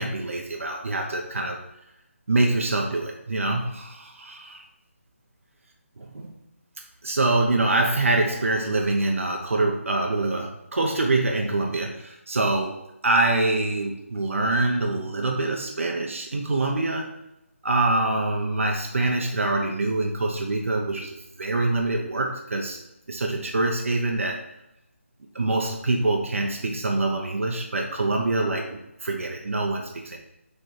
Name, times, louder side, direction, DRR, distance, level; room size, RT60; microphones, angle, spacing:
voice 1, 0.0-1.6 2.3-4.6 6.0-6.3 7.0-12.8 13.0-17.1 17.6-22.8 23.1-24.4 25.3-30.2, right 2 dB, 65° right, 1 dB, 0.9 m, -25 dB
6.5 x 3.6 x 4.4 m, 0.86 s
figure-of-eight pair, 160°, 8 cm